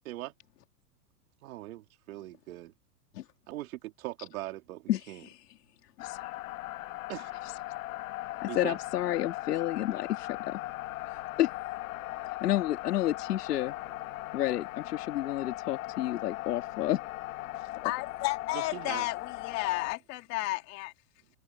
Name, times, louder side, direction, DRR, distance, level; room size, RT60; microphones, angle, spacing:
voice 1, 1.4-2.7 3.5-5.2 7.1-7.4 8.5-8.8 18.5-19.1, right 16 dB, 65° right, 2.9 m, -40 dB
voice 2, 4.9-5.4 6.0-6.4 8.4-10.6 11.4-11.5 12.4-13.7 14.3-17.0, left 13 dB, 85° left, 2.3 m, -30 dB
sound 1, 6.0-20.0, left 17 dB, 60° left, 1.1 m, -39 dB
voice 3, 17.6-20.9, left 20 dB, 35° left, 2.5 m, -33 dB
supercardioid pair, 155°, 46 cm